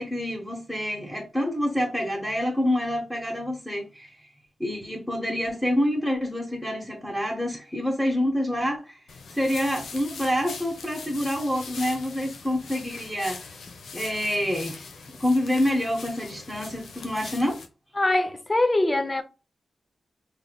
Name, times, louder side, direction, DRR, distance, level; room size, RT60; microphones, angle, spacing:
voice 1, 0.0-4.2 4.6-9.0 9.3-13.4 13.9-14.8 15.1-17.6, left 1 dB, 5° left, 1.2 m, -27 dB
sound 1, 9.1-17.7, left 4 dB, 85° left, 0.7 m, -41 dB
voice 2, 18.0-19.2, left 2 dB, 25° left, 0.7 m, -23 dB
4.0 x 3.3 x 2.3 m
cardioid pair, 65°, 0 cm